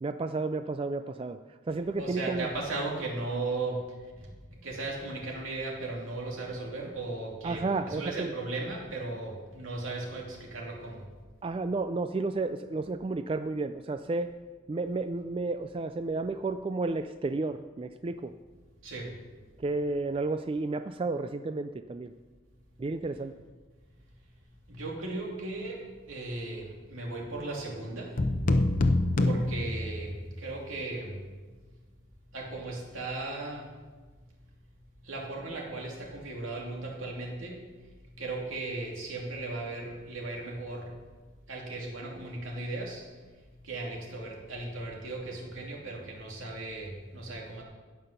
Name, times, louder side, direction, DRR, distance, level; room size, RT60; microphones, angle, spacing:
voice 1, 0.0-1.4 1.7-2.5 7.4-8.3 11.4-14.3 14.7-18.3 19.6-22.1 22.8-23.3, right 3 dB, 25° right, 9 dB, 0.3 m, -32 dB
voice 2, 2.0-4.3 4.6-11.1 18.8-19.1 24.7-28.2 29.2-31.2 32.3-33.8 35.0-37.6 38.2-40.9 41.5-43.1 43.6-47.6, right 2 dB, 75° right, -2 dB, 2.8 m, -36 dB
sound 1, 28.2-30.4, left 2 dB, 40° left, 0.7 m, -26 dB
16.0 x 5.8 x 6.7 m, 1.4 s
head